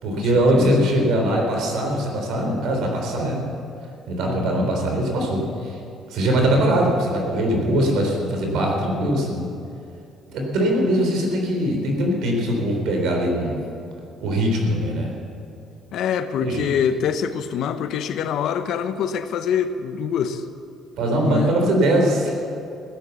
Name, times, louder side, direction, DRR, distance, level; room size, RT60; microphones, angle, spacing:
voice 1, 0.0-3.4 4.1-5.7 6.1-9.5 10.3-13.6 14.2-15.1 16.4-16.7 21.0-22.4, right 1 dB, 75° right, 1 dB, 3.8 m, -21 dB
voice 2, 0.5-0.9 4.3-4.8 15.9-20.4 21.3-21.5, left 8 dB, 70° left, 10 dB, 0.9 m, -25 dB
16.0 x 10.5 x 7.1 m, 2.6 s
cardioid pair, 125°, 0 cm